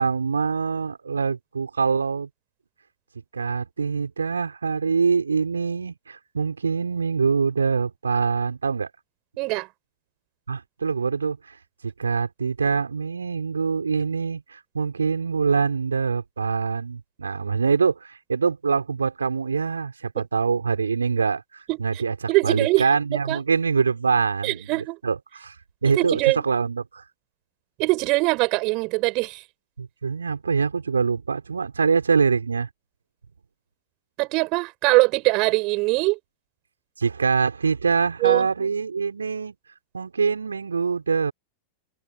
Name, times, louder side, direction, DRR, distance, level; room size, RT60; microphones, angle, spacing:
voice 1, 0.0-2.3 3.3-8.9 10.5-11.6 11.8-22.1 22.4-25.5 25.8-27.0 29.8-32.7 37.0-39.5 39.9-41.3, right 5 dB, 75° right, 6.0 m, -24 dB
voice 2, 9.4-9.7 21.7-21.8 22.3-23.4 24.4-25.0 25.9-26.5 27.8-29.4 34.2-36.2 38.2-38.7, right 25 dB, 40° right, 7.5 m, -22 dB
open air
figure-of-eight pair, 90°, 0 cm